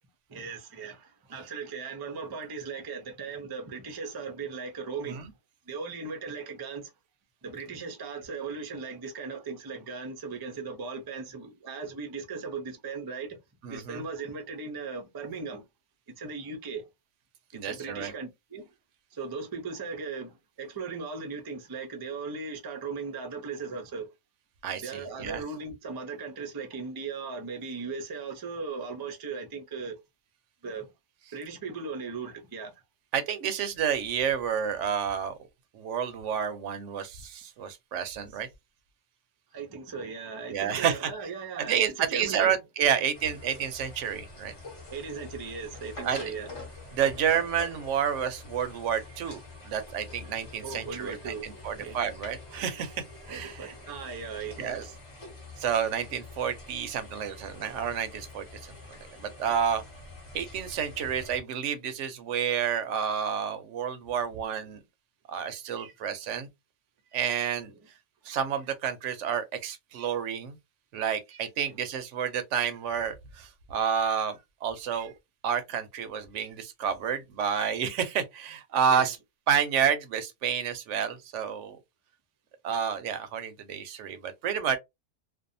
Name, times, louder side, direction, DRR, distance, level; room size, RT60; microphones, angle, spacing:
voice 1, 0.3-5.3 5.7-6.9 7.4-13.4 13.7-15.7 16.2-16.9 17.5-18.7 19.1-24.1 24.8-30.0 30.6-30.9 31.3-32.7 39.5-42.5 42.9-43.1 44.9-46.5 50.6-52.0 53.3-54.8 71.6-71.7 78.9-79.1, right 4 dB, 35° right, 0.4 m, -38 dB
voice 2, 13.6-14.0 17.5-18.1 24.6-25.4 33.1-35.3 35.7-38.5 40.5-41.1 41.6-44.5 46.0-46.2 46.9-53.7 54.6-54.8 55.6-58.5 59.2-59.8 60.3-64.8 65.3-66.5 67.1-67.7 68.3-70.6 70.9-75.1 75.4-79.2 79.5-81.8 82.6-84.8, right 8 dB, 80° right, 0.9 m, -30 dB
sound 1, 43.1-61.4, left 2 dB, 30° left, 0.8 m, -46 dB
2.6 x 2.2 x 2.6 m
omnidirectional pair, 1.2 m